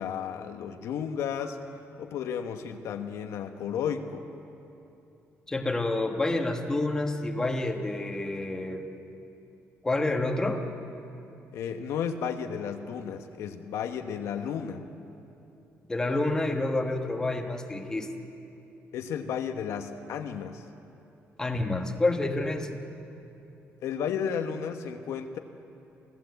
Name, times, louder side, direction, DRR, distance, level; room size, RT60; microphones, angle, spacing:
voice 1, 0.0-1.6 2.0-4.3 11.5-14.8 18.9-20.6 23.8-25.4, left 7 dB, 80° left, 5 dB, 1.4 m, -33 dB
voice 2, 5.5-8.9 9.8-10.6 15.9-18.1 21.4-22.8, left 2 dB, 10° left, 3 dB, 1.4 m, -28 dB
27.5 x 16.5 x 8.2 m, 2.8 s
cardioid pair, 165°, 5 cm